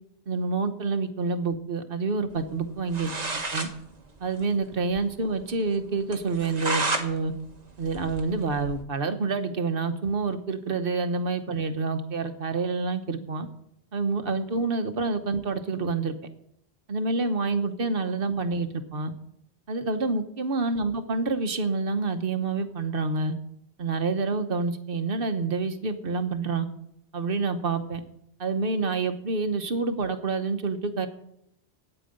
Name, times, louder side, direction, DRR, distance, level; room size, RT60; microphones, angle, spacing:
voice 1, 0.3-3.1 3.5-3.7 4.2-7.3 7.8-13.5 13.9-16.1 16.9-19.1 19.7-23.3 23.8-26.7 27.1-28.0 28.4-31.1, right 4 dB, 60° right, 8 dB, 1.2 m, -28 dB
sound 1, 2.7-2.8 2.9-3.7 4.1-4.2 4.4-4.5 4.9-5.0 5.4-5.5 6.1-7.1 7.5-8.8, right 3 dB, 40° right, 1.3 m, -30 dB
9.0 x 9.0 x 7.8 m, 0.74 s
omnidirectional pair, 1.1 m